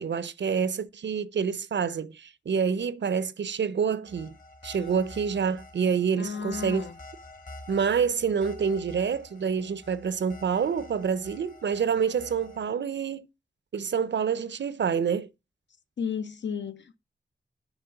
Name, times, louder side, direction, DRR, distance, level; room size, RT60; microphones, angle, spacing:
voice 1, 0.0-4.4 4.6-6.9 7.7-13.3 13.7-15.3, right 6 dB, 75° right, 0.6 m, -27 dB
sound 1, 4.1-12.7, left 1 dB, 45° left, 1.7 m, -48 dB
voice 2, 6.2-6.9 16.0-17.0, left 6 dB, 75° left, 0.7 m, -33 dB
6.7 x 4.2 x 5.7 m
wide cardioid pair, 110°, 19 cm